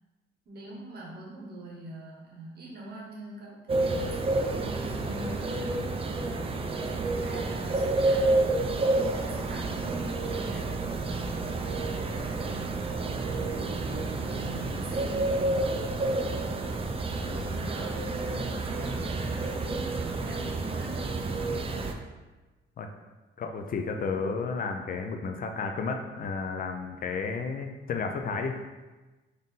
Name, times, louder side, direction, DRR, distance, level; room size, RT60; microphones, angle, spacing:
voice 1, 0.5-5.9 6.6-9.8 10.3-12.9 13.4-15.4 17.2-21.1, right 1 dB, 55° right, -2 dB, 1.2 m, -44 dB
sound 1, 3.7-21.9, right 2 dB, 30° right, 0.4 m, -29 dB
voice 2, 17.1-17.6 22.8-22.9 23.4-28.6, left 4 dB, 45° left, 4 dB, 0.4 m, -32 dB
4.0 x 2.6 x 3.7 m, 1.2 s
cardioid pair, 90°, 20 cm